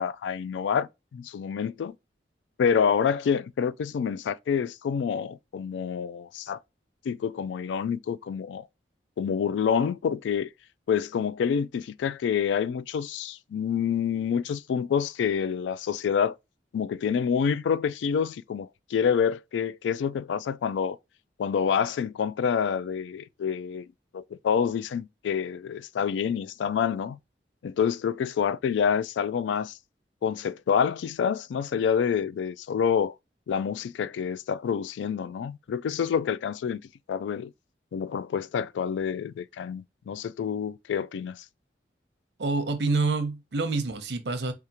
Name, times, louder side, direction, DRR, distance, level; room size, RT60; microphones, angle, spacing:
voice 1, 0.0-1.9 2.6-6.6 7.1-8.7 9.2-10.5 10.9-16.4 16.7-21.0 21.4-23.9 24.1-27.2 27.6-29.7 30.2-33.1 33.5-36.8 37.1-37.5 37.9-41.4, left 7 dB, 90° left, 0.3 m, -27 dB
voice 2, 42.4-44.5, right 3 dB, 70° right, 0.7 m, -27 dB
4.9 x 2.4 x 2.8 m
head